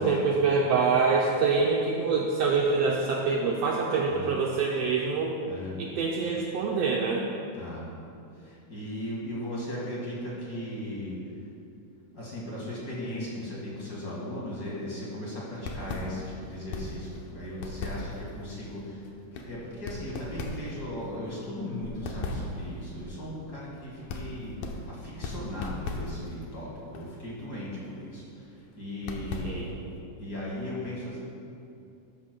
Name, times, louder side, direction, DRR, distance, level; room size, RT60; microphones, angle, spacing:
voice 1, 0.0-5.3 5.8-7.2 29.4-29.7, right 4 dB, 80° right, -1 dB, 1.5 m, -25 dB
voice 2, 5.5-5.8 7.6-7.8 8.3-11.2 12.1-24.5 24.9-29.8 30.2-31.2, left 1 dB, 40° left, -6 dB, 2.1 m, -37 dB
sound 1, 15.5-30.0, left 2 dB, 75° left, 2.1 m, -39 dB
13.0 x 11.0 x 2.2 m, 2.7 s
omnidirectional pair, 3.4 m